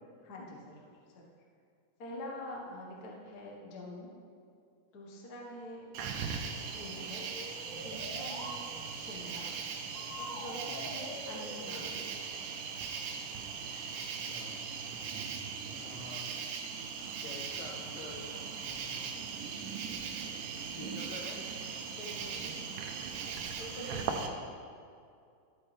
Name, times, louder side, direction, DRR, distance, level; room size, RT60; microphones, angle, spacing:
voice 1, 0.2-1.2 2.0-4.1 4.9-5.9 6.6-7.3 7.8-8.6 8.9-9.5 10.2-11.9 21.9-22.6 23.6-24.3, left 1 dB, 55° left, -2 dB, 1.0 m, -45 dB
Cricket, 5.9-24.3, right 6 dB, 75° right, 2.1 m, -39 dB
sound 1, 6.8-8.6 9.9-12.0, left 1 dB, 35° left, 1.3 m, -45 dB
voice 2, 13.9-14.7 15.7-16.3 17.2-18.3 18.6-19.4 20.7-21.4, left 4 dB, 70° left, 0 dB, 1.9 m, -48 dB
12.5 x 8.8 x 3.3 m, 2.4 s
omnidirectional pair, 3.9 m